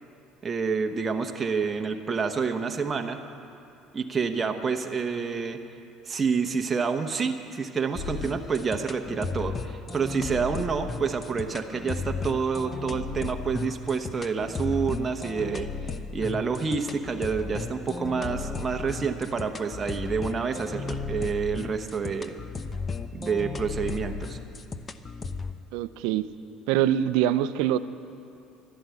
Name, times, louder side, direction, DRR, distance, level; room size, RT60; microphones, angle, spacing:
voice 1, 0.4-3.2 3.9-5.6 6.1-15.7 16.1-22.3 23.1-24.4, right 5 dB, 30° right, 5 dB, 1.0 m, -28 dB
sound 1, 8.0-25.5, left 4 dB, 30° left, 0.7 m, -35 dB
voice 2, 25.7-26.3 26.7-27.8, right 11 dB, 80° right, 14 dB, 0.5 m, -24 dB
12.5 x 11.5 x 8.4 m, 2.6 s
supercardioid pair, 95°, 0 cm